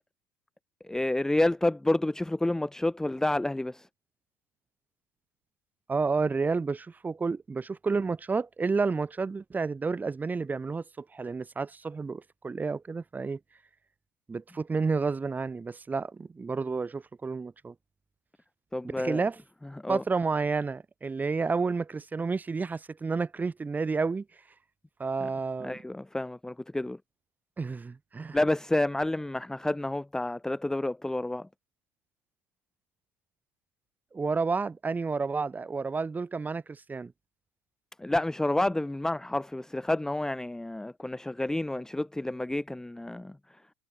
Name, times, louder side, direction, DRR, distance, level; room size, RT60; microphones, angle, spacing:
voice 1, 0.8-3.9 18.7-19.2 19.8-20.0 25.6-27.0 28.3-31.5 38.0-43.4, left 1 dB, 5° left, 1.1 m, -29 dB
voice 2, 5.9-13.4 14.3-17.7 18.8-19.4 19.9-24.2 25.0-25.8 27.6-28.4 34.1-37.1, right 4 dB, 20° right, 2.5 m, -30 dB
hypercardioid pair, 75°, 8 cm